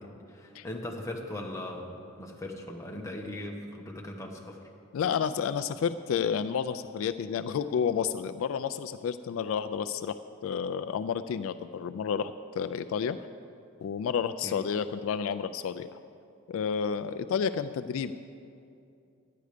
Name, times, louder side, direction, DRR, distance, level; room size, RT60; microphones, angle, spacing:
voice 1, 0.0-4.6 14.4-14.6, left 1 dB, 15° left, 0 dB, 0.9 m, -39 dB
voice 2, 4.9-13.2 13.8-15.9 16.5-18.1, left 7 dB, 70° left, 11 dB, 0.3 m, -30 dB
10.5 x 9.5 x 5.0 m, 2.5 s
head